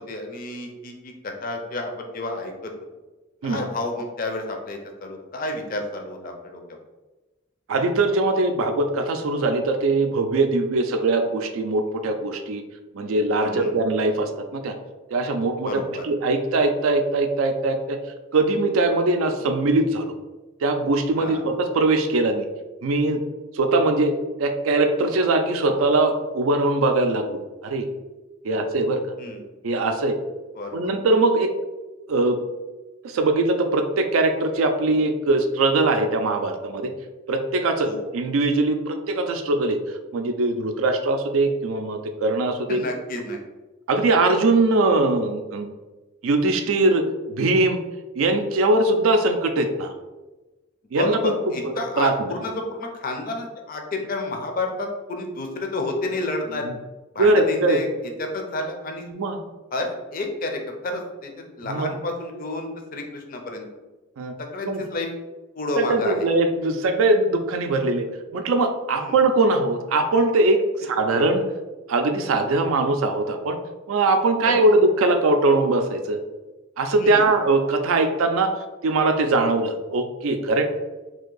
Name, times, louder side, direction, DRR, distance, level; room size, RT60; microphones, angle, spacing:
voice 1, 0.0-2.7 3.4-6.6 13.4-13.8 15.6-16.1 21.2-21.4 28.5-28.6 29.2-29.4 30.5-30.9 37.8-38.0 42.7-43.4 51.0-56.6 57.1-57.9 58.2-59.1 59.7-63.7 64.4-65.1 65.6-66.3 69.0-69.2 74.4-74.6 76.9-77.3, left 2 dB, 40° left, 3 dB, 0.5 m, -30 dB
voice 2, 7.7-12.6 12.9-14.7 15.1-15.7 16.0-18.0 18.3-20.1 20.6-22.5 22.8-23.2 23.5-24.1 24.4-27.9 28.4-29.0 29.6-30.2 30.7-31.5 32.1-32.4 33.0-36.9 37.3-39.8 40.1-42.8 43.9-45.7 46.2-47.8 48.2-49.9 50.9-51.3 52.0-52.4 57.2-57.8 59.1-59.4 61.6-61.9 64.2-64.3 64.7-64.8 65.8-68.1 68.3-71.4 71.9-73.6 73.9-76.2 76.8-78.5 78.8-80.7, right 2 dB, 75° right, 6 dB, 0.4 m, -21 dB
2.8 x 2.6 x 3.8 m, 1.1 s
head